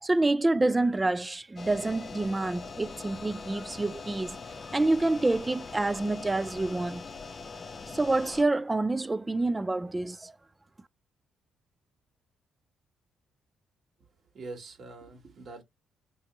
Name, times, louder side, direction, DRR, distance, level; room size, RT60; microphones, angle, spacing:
voice 1, 0.0-4.4 4.7-7.1 7.9-10.3, right 2 dB, 20° right, 0.3 m, -27 dB
sound 1, 1.6-8.4, left 4 dB, 35° left, 0.6 m, -42 dB
voice 2, 14.0-15.6, right 3 dB, 55° right, 1.7 m, -44 dB
3.0 x 2.8 x 4.5 m
cardioid pair, 90°, 0 cm